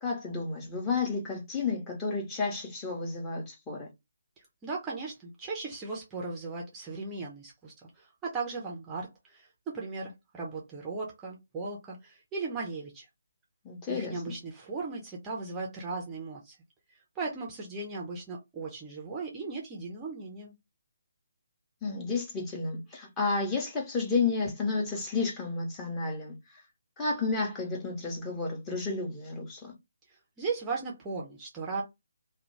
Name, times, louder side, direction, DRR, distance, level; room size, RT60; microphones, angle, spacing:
voice 1, 0.0-3.9 13.6-14.3 21.8-26.3 27.0-29.7, left 4 dB, 15° left, 0.8 m, -31 dB
voice 2, 4.6-13.1 13.9-16.6 16.9-20.5 30.1-31.8, right 4 dB, 15° right, 0.6 m, -37 dB
2.4 x 2.2 x 3.1 m
figure-of-eight pair, 145°, 0 cm